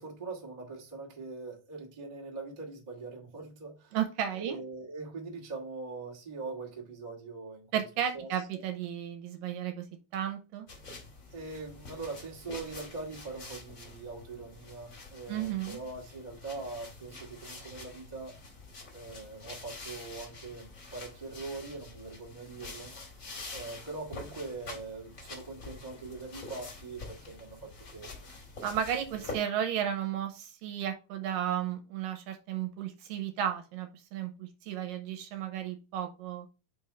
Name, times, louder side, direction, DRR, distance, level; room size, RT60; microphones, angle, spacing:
voice 1, 0.0-4.0 4.3-7.9 8.1-8.6 11.3-18.4 18.9-22.9 23.5-28.2 29.1-29.3, right 3 dB, 30° right, 0.7 m, -42 dB
voice 2, 3.9-4.6 7.7-9.9 10.1-10.7 15.3-15.8 28.6-36.5, right 10 dB, 75° right, 2.4 m, -33 dB
sound 1, 10.7-29.4, left 3 dB, 40° left, 1.3 m, -46 dB
5.6 x 3.5 x 5.5 m
omnidirectional pair, 4.3 m